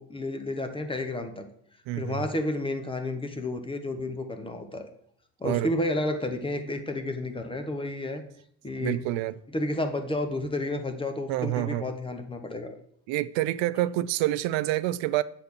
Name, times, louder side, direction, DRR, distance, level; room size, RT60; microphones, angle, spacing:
voice 1, 0.0-1.5 2.0-4.9 5.4-8.2 8.6-9.0 9.5-12.8, left 2 dB, 10° left, 0.8 m, -31 dB
voice 2, 1.9-2.3 5.4-5.7 8.8-9.4 11.3-11.9 13.1-15.2, right 15 dB, 75° right, 0.6 m, -27 dB
8.2 x 4.2 x 7.0 m
cardioid pair, 150°, 45 cm